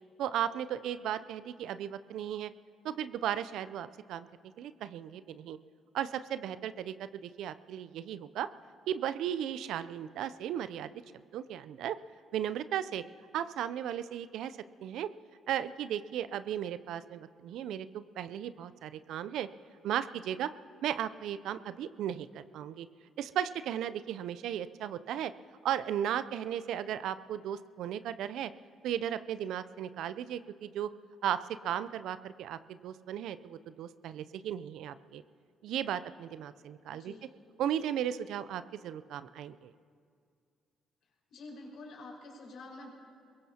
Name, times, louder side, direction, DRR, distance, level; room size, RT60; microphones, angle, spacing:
voice 1, 0.2-2.5 2.8-4.3 4.6-5.6 5.9-8.5 8.9-10.9 11.3-12.0 12.3-13.0 13.3-15.1 15.5-19.5 19.8-20.5 20.8-22.9 23.2-25.3 25.6-28.5 28.8-30.9 31.2-35.2 35.6-37.1 37.6-39.7, right 10 dB, 70° right, 14 dB, 0.5 m, -35 dB
voice 2, 36.9-37.4 41.3-42.9, left 2 dB, 70° left, -3 dB, 5.2 m, -48 dB
23.0 x 21.5 x 2.9 m, 2.3 s
hypercardioid pair, 50°, 0 cm